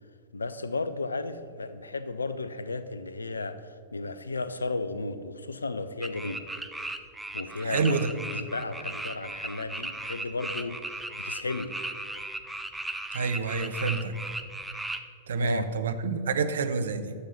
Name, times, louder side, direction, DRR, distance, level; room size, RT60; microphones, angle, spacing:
voice 1, 0.3-6.5 7.3-8.1 8.3-11.7 15.4-15.7, left 3 dB, 75° left, 12 dB, 0.5 m, -34 dB
sound 1, 6.0-15.0, right 2 dB, 5° right, 0.5 m, -36 dB
voice 2, 7.6-8.1 13.1-14.1 15.3-17.1, right 4 dB, 60° right, 10 dB, 0.7 m, -28 dB
10.0 x 7.1 x 5.7 m, 2.3 s
figure-of-eight pair, 100°, 0 cm